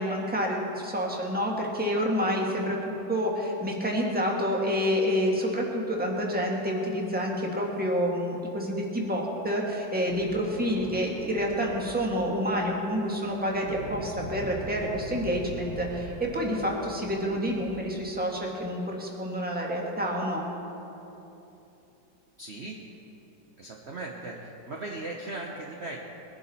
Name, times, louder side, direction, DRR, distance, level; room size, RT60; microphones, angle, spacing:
voice 1, 0.0-20.4, equal, 5° right, -1 dB, 1.5 m, -28 dB
sound 1, 8.9-17.9, right 1 dB, 80° right, 3.1 m, -42 dB
voice 2, 22.4-22.8 23.6-26.0, right 2 dB, 40° right, -1 dB, 1.1 m, -38 dB
21.5 x 11.0 x 4.3 m, 3.0 s
omnidirectional pair, 2.1 m